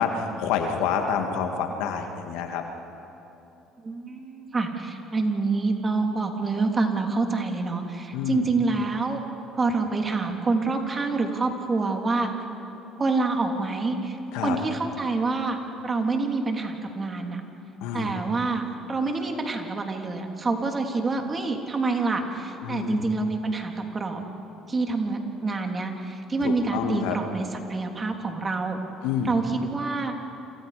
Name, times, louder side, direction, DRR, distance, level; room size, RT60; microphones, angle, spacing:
voice 1, 0.0-2.6 8.1-8.5 14.3-14.6 17.8-18.1 22.6-23.0 26.4-27.2 29.0-29.4, left 7 dB, 75° left, 4 dB, 2.3 m, -28 dB
voice 2, 3.8-9.2 9.5-12.3 13.0-15.6 15.8-17.4 17.9-18.6 18.9-24.2 24.7-28.8 29.2-30.1, right 3 dB, 30° right, 3 dB, 3.4 m, -27 dB
29.0 x 27.0 x 5.2 m, 3.0 s
hypercardioid pair, 70°, 0 cm